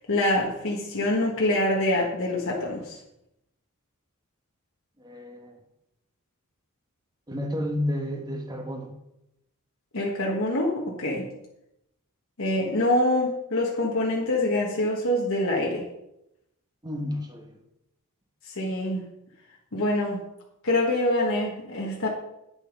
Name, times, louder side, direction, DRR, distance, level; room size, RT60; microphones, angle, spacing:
voice 1, 0.1-3.0 9.9-11.3 12.4-15.8 18.6-19.0 19.7-20.2 20.6-22.1, left 1 dB, 65° left, -2 dB, 1.5 m, -25 dB
voice 2, 5.0-5.5 7.3-8.9 16.8-17.6, left 1 dB, 20° right, 4 dB, 1.4 m, -31 dB
9.4 x 6.5 x 5.2 m, 0.84 s
head